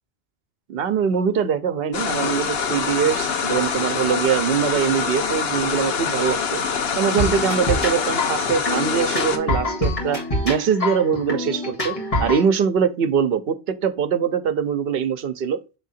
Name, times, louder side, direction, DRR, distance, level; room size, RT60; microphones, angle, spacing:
voice 1, 0.7-6.6 7.0-13.6 13.8-15.6, right 7 dB, 70° right, 0.9 m, -22 dB
sound 1, 1.9-9.4, left 6 dB, 70° left, 1.0 m, -25 dB
sound 2, 7.2-12.4, left 1 dB, 35° left, 2.0 m, -26 dB
6.8 x 3.6 x 4.1 m
omnidirectional pair, 1.1 m